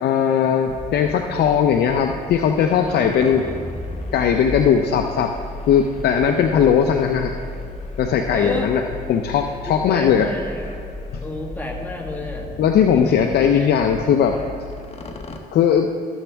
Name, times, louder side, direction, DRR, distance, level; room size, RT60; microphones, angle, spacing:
voice 1, 0.0-3.4 4.1-5.3 5.7-7.3 8.0-8.8 9.1-10.3 12.6-14.4 15.5-15.9, left 8 dB, 75° left, 4 dB, 0.5 m, -18 dB
sound 1, 0.7-15.4, left 2 dB, 40° left, 1.0 m, -34 dB
voice 2, 2.9-3.5 8.3-8.7 9.7-10.7 11.2-12.5 12.9-13.8, left 1 dB, 10° left, 0 dB, 1.6 m, -31 dB
13.0 x 7.1 x 3.4 m, 2.4 s
cardioid pair, 75°, 17 cm